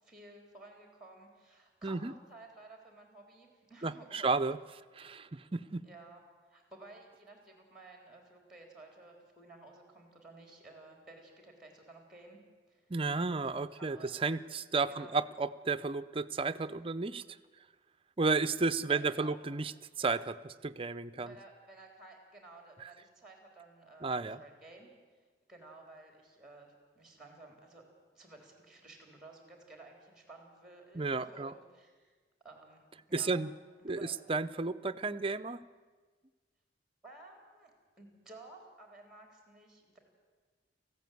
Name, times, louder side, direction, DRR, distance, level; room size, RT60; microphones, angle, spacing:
voice 1, 0.0-4.5 5.8-6.2 6.5-12.4 12.7-12.9 13.4-14.3 14.9-15.1 18.8-19.4 21.2-24.9 25.5-27.8 28.1-32.1 32.4-33.4 33.8-34.1 37.0-40.0, right 2 dB, 5° right, 3 dB, 3.7 m, -54 dB
voice 2, 3.8-4.6 4.9-5.9 12.9-17.2 18.2-19.7 20.0-21.3 22.8-22.9 24.0-24.4 30.9-31.5 33.1-33.5 33.8-35.6, right 4 dB, 30° right, 13 dB, 0.6 m, -33 dB
19.0 x 15.0 x 9.3 m, 1.4 s
head